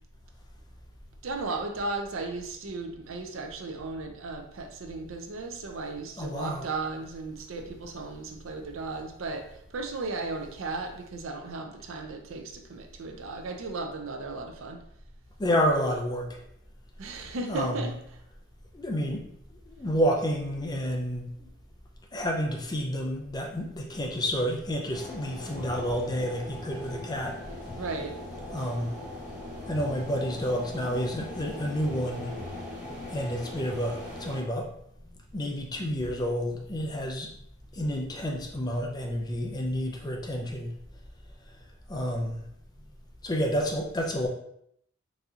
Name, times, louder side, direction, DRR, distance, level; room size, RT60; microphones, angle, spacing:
voice 1, 1.2-14.8 17.0-18.0 27.8-28.2, right 3 dB, 75° right, 4 dB, 0.5 m, -35 dB
voice 2, 6.2-6.7 15.4-16.4 17.5-17.8 18.7-19.3 19.7-21.3 22.1-27.4 28.5-29.0 29.7-32.4 33.1-34.7 35.3-37.3 37.7-40.7 41.9-42.4 43.2-44.3, equal, 20° left, 1 dB, 0.4 m, -29 dB
sound 1, 24.9-34.4, left 2 dB, 5° right, 1.0 m, -40 dB
4.0 x 2.7 x 2.4 m, 0.72 s
head